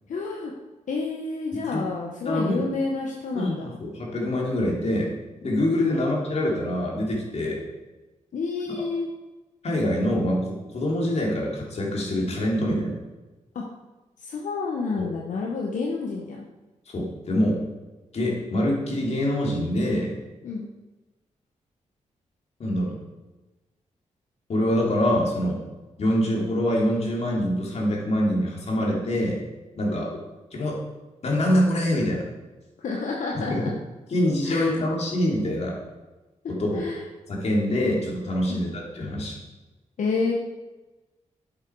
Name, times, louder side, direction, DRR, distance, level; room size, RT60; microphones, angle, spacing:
voice 1, 0.1-0.5 0.9-3.7 5.9-6.1 8.3-9.1 13.5-13.6 14.2-16.4 20.4-20.7 29.9-30.0 32.8-33.7 34.4-34.8 36.7-37.0 38.5-38.6 40.0-40.3, left 4 dB, 80° left, -1 dB, 1.3 m, -29 dB
voice 2, 2.2-2.7 3.3-5.1 5.4-7.6 9.6-13.0 15.0-15.1 16.9-17.6 18.1-20.1 22.6-23.0 24.5-25.6 26.0-29.4 29.7-30.1 30.5-30.8 31.2-32.2 33.3-33.7 34.1-35.8 36.5-36.9 37.3-39.3, left 1 dB, 55° left, -2 dB, 3.2 m, -25 dB
10.5 x 8.2 x 4.8 m, 1.1 s
wide cardioid pair, 110°, 13 cm